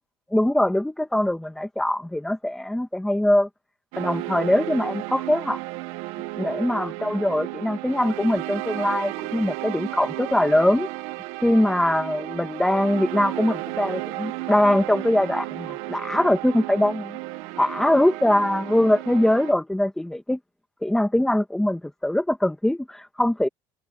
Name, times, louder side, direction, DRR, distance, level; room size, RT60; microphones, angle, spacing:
voice 1, 0.3-3.5 4.0-5.6 6.4-10.9 11.4-17.2 17.6-20.4 20.8-23.5, left 1 dB, 5° left, 2.1 m, -22 dB
sound 1, 3.9-19.5, right 19 dB, 85° right, 1.4 m, -33 dB
cardioid pair, 130°, 11 cm